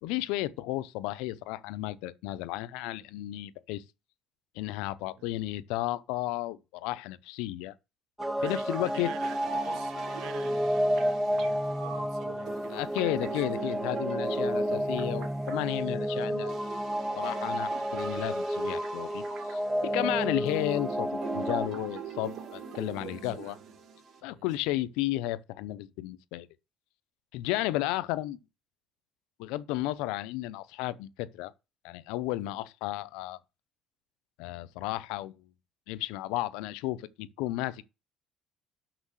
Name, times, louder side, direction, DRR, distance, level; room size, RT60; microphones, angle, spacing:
voice 1, 0.0-3.8 4.6-7.7 8.4-9.1 12.7-16.5 17.2-23.6 24.2-26.5 27.3-28.4 29.4-31.5 31.8-33.4 34.4-35.4 35.9-37.8, left 16 dB, 90° left, 0.6 m, -33 dB
sound 1, 8.2-21.7, equal, 5° right, 0.4 m, -31 dB
sound 2, 8.2-24.2, right 7 dB, 55° right, 2.2 m, -42 dB
voice 2, 8.4-14.0 20.1-20.8 23.1-23.7 24.2-24.5 32.4-32.6 35.9-36.0, right 9 dB, 75° right, 1.1 m, -49 dB
6.3 x 6.1 x 6.3 m
cardioid pair, 95°, 0 cm